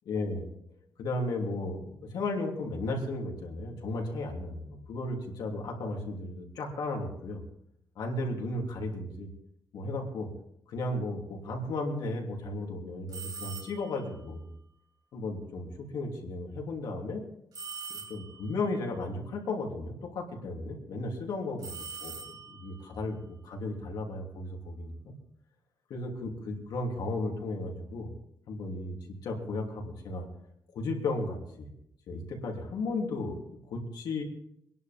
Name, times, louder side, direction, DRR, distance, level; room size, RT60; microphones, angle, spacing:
voice 1, 0.0-0.5 1.0-7.4 7.9-9.3 9.7-10.3 10.7-14.5 15.1-17.2 18.1-21.7 22.0-22.2 22.5-25.1 25.9-28.1 28.5-29.0 29.2-30.3 30.7-31.7 32.1-33.4 33.7-34.2, left 2 dB, 75° left, 1 dB, 3.2 m, -34 dB
sound 1, 13.1-14.0 17.5-18.5 21.6-22.7, right 5 dB, 70° right, 4.6 m, -42 dB
23.5 x 11.0 x 3.6 m, 0.75 s
cardioid pair, 135°, 7 cm